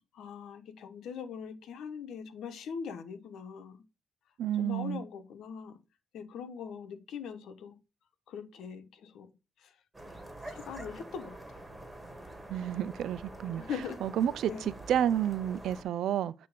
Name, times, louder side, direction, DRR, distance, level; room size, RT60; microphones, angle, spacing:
voice 1, 0.1-3.8 4.6-5.8 6.1-7.8 8.3-9.3 10.5-11.6 13.6-14.1 14.5-14.7, left 7 dB, 80° left, 1.2 m, -41 dB
voice 2, 4.4-5.0 12.5-13.6 14.0-16.3, right 10 dB, 80° right, 0.4 m, -30 dB
sound 1, 9.9-15.8, right 1 dB, 15° right, 1.8 m, -46 dB
9.3 x 3.1 x 5.0 m
cardioid pair, 95°, 0 cm